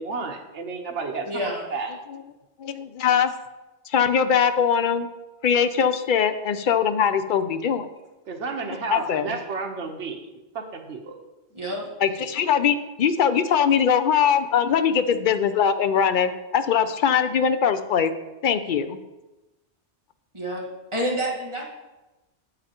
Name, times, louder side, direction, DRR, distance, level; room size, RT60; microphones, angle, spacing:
voice 1, 0.0-2.0 8.3-10.2 10.5-11.2, right 4 dB, 80° right, 3 dB, 1.2 m, -32 dB
voice 2, 1.2-1.6 9.3-9.4 11.5-11.9 20.3-20.6 20.9-21.6, equal, 25° right, -3 dB, 1.6 m, -28 dB
voice 3, 2.6-3.3 3.9-5.1 5.4-7.9 8.9-9.4 12.0-18.1 18.4-19.0, left 7 dB, 60° left, 10 dB, 0.6 m, -21 dB
8.9 x 8.0 x 2.9 m, 1.1 s
omnidirectional pair, 1.2 m